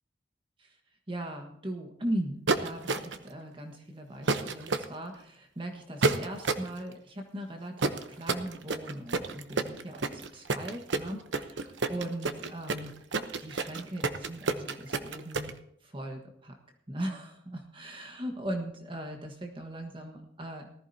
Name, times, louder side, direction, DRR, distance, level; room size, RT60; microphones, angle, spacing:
voice 1, 1.1-12.9 13.4-15.5 15.8-16.6 16.9-20.7, right 1 dB, 30° right, 3 dB, 1.4 m, -39 dB
sound 1, 2.5-3.3 4.3-4.9 6.0-6.7 7.8-15.5, right 3 dB, 85° right, 0.9 m, -29 dB
19.5 x 14.0 x 2.8 m, 0.71 s
head